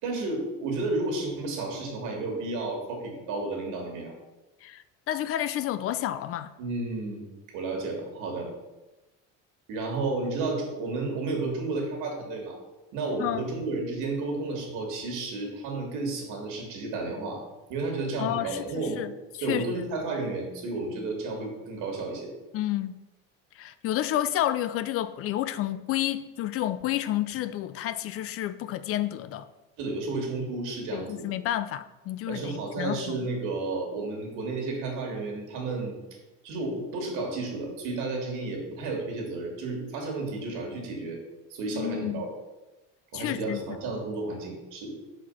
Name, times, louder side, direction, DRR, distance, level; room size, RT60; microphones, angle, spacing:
voice 1, 0.0-4.1 6.6-7.3 7.5-8.5 9.7-12.6 12.9-17.4 17.7-19.0 19.4-22.3 29.8-31.2 32.3-36.0 36.4-41.2 41.5-42.3 43.1-45.0, right 3 dB, 75° right, 1 dB, 2.4 m, -32 dB
voice 2, 4.6-6.5 13.2-13.5 18.2-18.6 19.0-19.1 19.4-19.9 22.5-23.0 23.6-29.5 30.9-33.3 41.7-42.2 43.1-43.6, left 13 dB, 45° left, 14 dB, 0.4 m, -30 dB
6.1 x 5.1 x 5.6 m, 1.1 s
cardioid pair, 150°, 31 cm